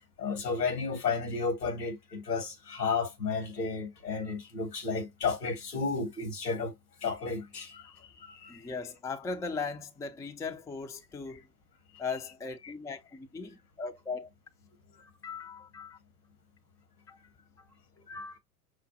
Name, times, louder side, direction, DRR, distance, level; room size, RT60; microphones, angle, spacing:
voice 1, 0.2-6.7 7.0-7.9 8.2-8.7 12.6-12.7, left 4 dB, 85° left, 1.8 m, -32 dB
voice 2, 8.5-11.4 12.0-14.3 15.0-16.0 17.1-17.2 17.6-17.7 18.1-18.4, left 4 dB, 5° left, 0.4 m, -38 dB
6.0 x 2.2 x 2.7 m
figure-of-eight pair, 75°, 47 cm